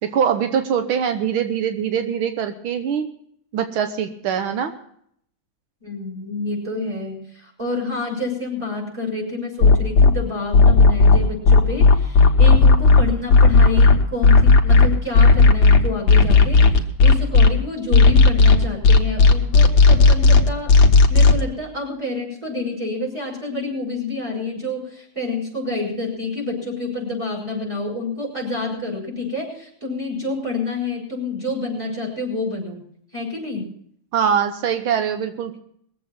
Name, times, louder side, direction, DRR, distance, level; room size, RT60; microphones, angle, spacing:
voice 1, 0.0-3.1 3.5-4.7 34.1-35.6, right 8 dB, 85° right, 7 dB, 1.8 m, -23 dB
voice 2, 5.8-20.8 21.1-32.8 33.1-33.7, left 2 dB, 15° right, -3 dB, 5.8 m, -28 dB
sound 1, 9.6-10.1 10.5-17.5 17.9-21.4, left 3 dB, 70° left, 1.8 m, -11 dB
21.5 x 7.7 x 6.0 m, 0.66 s
omnidirectional pair, 2.2 m